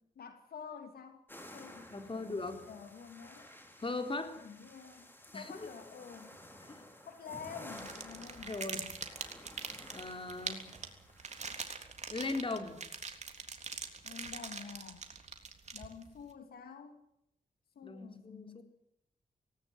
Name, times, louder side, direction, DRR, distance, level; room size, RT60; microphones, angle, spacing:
voice 1, 0.2-1.2 1.5-2.4 2.7-3.5 4.3-5.1 5.3-6.3 7.0-8.5 14.0-15.0 15.7-17.0 17.7-18.6, left 6 dB, 90° left, 7 dB, 2.7 m, -49 dB
sound 1, 1.3-12.5, left 1 dB, 15° left, 5.3 m, -54 dB
voice 2, 1.9-2.6 3.8-4.4 5.3-5.7 6.7-6.8 8.5-8.9 9.9-10.7 12.1-12.8 17.8-18.6, left 3 dB, 35° left, 7 dB, 3.9 m, -39 dB
sound 2, 7.7-16.2, right 4 dB, 50° right, 3.6 m, -43 dB
18.5 x 18.5 x 9.4 m, 0.80 s
cardioid pair, 70°, 15 cm